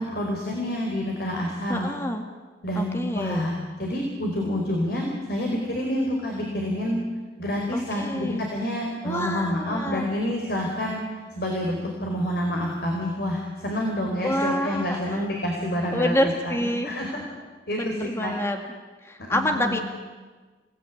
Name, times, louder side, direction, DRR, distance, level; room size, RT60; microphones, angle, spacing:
voice 1, 0.0-1.9 2.6-7.0 7.4-11.0 11.3-16.1 16.4-17.2 17.7-18.4 19.3-19.8, left 1 dB, 60° left, 0 dB, 4.7 m, -28 dB
voice 2, 1.7-2.2 2.8-3.5 7.7-8.4 9.0-10.1 14.2-15.2 15.9-16.9 17.8-18.6 19.0-19.8, left 1 dB, 15° left, 4 dB, 1.8 m, -27 dB
30.0 x 19.0 x 9.6 m, 1.3 s
head